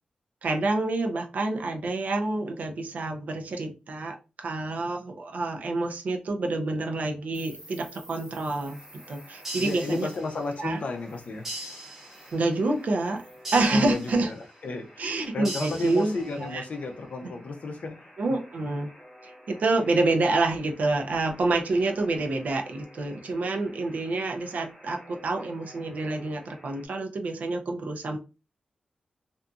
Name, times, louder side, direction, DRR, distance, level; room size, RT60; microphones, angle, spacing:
voice 1, 0.4-10.1 10.6-10.8 12.3-13.2 13.5-14.3 15.0-16.6 18.2-18.9 19.2-28.2, right 2 dB, 65° right, 0.6 m, -28 dB
Insect, 7.3-14.1, right 1 dB, 25° right, 1.4 m, -53 dB
Alarm, 8.6-26.9, equal, 15° left, 0.9 m, -52 dB
sound 1, 9.4-10.5 11.4-12.5 13.4-14.5 15.4-16.5, right 1 dB, 10° right, 0.9 m, -39 dB
voice 2, 9.6-11.5 13.7-18.1, left 3 dB, 55° left, 0.5 m, -33 dB
2.6 x 2.6 x 2.3 m
wide cardioid pair, 165°, 3 cm